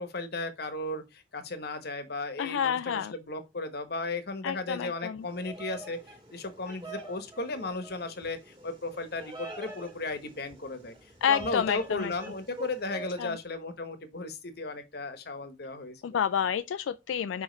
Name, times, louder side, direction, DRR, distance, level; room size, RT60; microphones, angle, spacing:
voice 1, 0.0-16.2, left 2 dB, 55° left, 1.0 m, -35 dB
voice 2, 2.4-3.1 4.4-5.2 11.2-12.1 13.2-13.3 16.0-17.4, left 8 dB, 90° left, 0.3 m, -29 dB
Bird vocalization bird call bird song, 5.2-13.3, right 2 dB, 25° right, 1.7 m, -45 dB
5.1 x 5.0 x 3.9 m
head